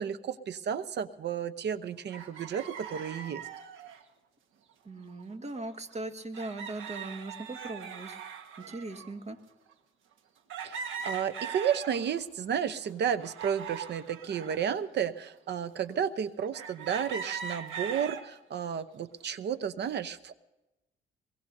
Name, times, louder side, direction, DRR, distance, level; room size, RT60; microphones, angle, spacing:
voice 1, 0.0-3.4 10.6-20.4, right 8 dB, 60° right, 14 dB, 0.9 m, -32 dB
sound 1, 2.1-4.0 5.2-5.3 5.6-5.7 6.3-9.1 9.7-9.8 10.5-12.2 12.7-14.6 15.3-15.4 16.5-18.3 18.8-19.2, right 6 dB, 80° right, 1.5 m, -40 dB
voice 2, 4.9-8.2 8.7-9.4, right 2 dB, 35° right, 6 dB, 1.8 m, -39 dB
22.0 x 22.0 x 2.7 m, 1.0 s
cardioid pair, 90°, 20 cm